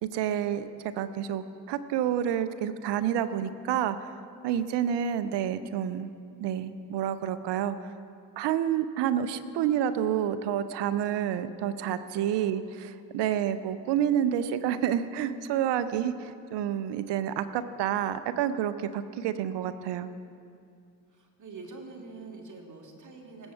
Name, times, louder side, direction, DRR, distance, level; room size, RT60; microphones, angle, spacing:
voice 1, 0.0-4.1 4.4-6.1 6.4-7.7 8.4-12.6 13.1-20.1, right 10 dB, 60° right, 13 dB, 0.8 m, -29 dB
voice 2, 21.1-23.5, right 4 dB, 40° right, 2 dB, 2.2 m, -45 dB
19.5 x 8.0 x 4.6 m, 2.4 s
figure-of-eight pair, 40°, 48 cm